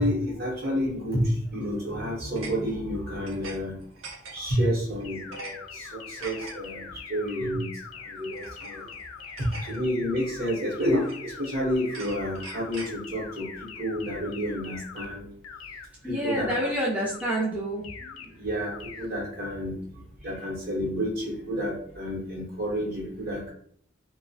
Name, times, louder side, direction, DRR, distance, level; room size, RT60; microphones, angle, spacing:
voice 1, 0.0-3.8 4.3-6.8 7.1-7.7 8.1-8.9 9.4-13.5 13.8-15.3 16.1-16.5 18.4-19.8 20.2-23.5, equal, 50° right, -2 dB, 0.8 m, -29 dB
sound 1, 1.5-1.8 2.4-3.6 3.8-4.6 5.0-5.5 5.8-6.5 7.3-7.5 8.3-9.8 10.2-10.4 10.8-11.4 11.8-12.9, right 3 dB, 85° right, 0.6 m, -43 dB
sound 2, 5.0-15.1 15.4-15.9 16.2-16.7 17.0-17.5 17.8-18.3 18.6-19.1, left 6 dB, 80° left, 0.3 m, -42 dB
voice 2, 9.3-9.7 16.0-18.4 20.2-20.3, equal, 5° right, -6 dB, 0.4 m, -30 dB
2.3 x 2.0 x 2.6 m, 0.62 s
head